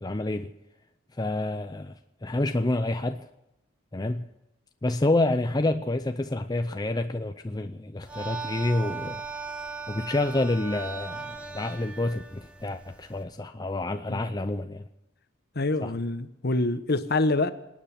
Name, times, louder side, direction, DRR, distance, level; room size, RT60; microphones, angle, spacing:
voice 1, 0.0-0.5 1.2-1.9 2.2-3.2 3.9-4.3 4.8-9.2 9.9-14.8 15.8-15.9, left 2 dB, 20° left, 0.6 m, -28 dB
sound 1, 8.0-13.2, right 4 dB, 5° right, 1.6 m, -38 dB
voice 2, 15.5-17.5, left 2 dB, 50° left, 1.1 m, -26 dB
26.0 x 9.5 x 5.9 m
head